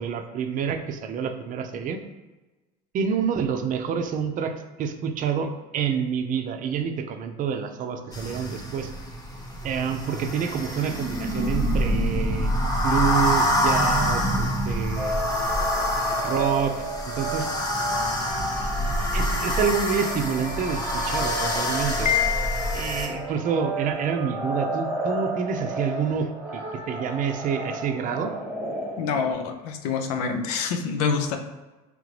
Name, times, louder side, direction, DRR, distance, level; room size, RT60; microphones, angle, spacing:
voice 1, 0.0-2.0 2.9-8.9 9.6-12.5 12.8-15.2 15.7-16.7 17.0-17.5 19.1-22.1 22.7-26.6 26.9-28.3, right 7 dB, 45° right, 7 dB, 0.5 m, -28 dB
sound 1, 8.1-23.1, equal, 20° left, 1.0 m, -26 dB
sound 2, 15.0-29.3, right 1 dB, 10° right, 1.0 m, -32 dB
Piano, 22.1-23.1, left 11 dB, 40° left, 0.4 m, -26 dB
voice 2, 29.0-31.4, left 5 dB, 80° left, 6 dB, 0.6 m, -26 dB
3.7 x 3.3 x 3.2 m, 1.1 s
supercardioid pair, 100°, 19 cm